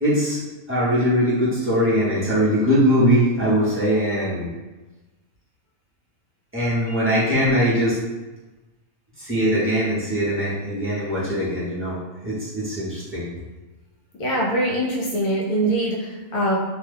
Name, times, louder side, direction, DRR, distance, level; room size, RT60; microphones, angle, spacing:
voice 1, 0.0-4.5 6.5-8.0 9.2-12.0 12.2-13.3, equal, 15° right, -9 dB, 0.6 m, -21 dB
voice 2, 14.2-16.6, right 1 dB, 70° left, -4 dB, 1.1 m, -23 dB
2.8 x 2.2 x 3.3 m, 1.1 s
omnidirectional pair, 1.5 m